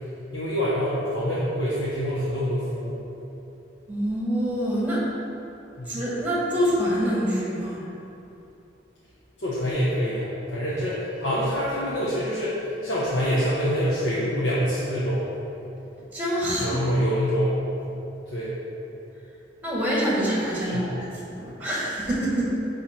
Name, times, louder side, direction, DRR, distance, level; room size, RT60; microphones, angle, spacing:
voice 1, 0.3-2.9 5.8-5.9 9.4-15.2 16.6-17.6 18.3-18.5 20.6-20.9, equal, 80° left, -9 dB, 1.2 m, -26 dB
voice 2, 3.9-5.1 5.9-7.9 16.1-16.8 19.6-22.6, equal, 10° right, -6 dB, 1.6 m, -26 dB
9.8 x 3.5 x 4.5 m, 2.9 s
head